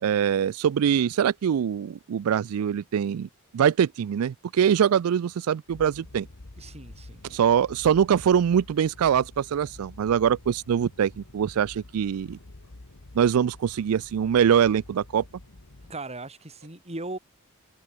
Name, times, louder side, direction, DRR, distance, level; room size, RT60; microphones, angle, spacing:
voice 1, 0.0-6.3 7.3-12.4 13.1-15.2, right 8 dB, 80° right, 0.4 m, -23 dB
sound 1, 5.7-15.9, left 2 dB, 80° left, 1.5 m, -48 dB
voice 2, 6.6-7.2 15.9-17.2, right 2 dB, 30° right, 4.1 m, -38 dB
head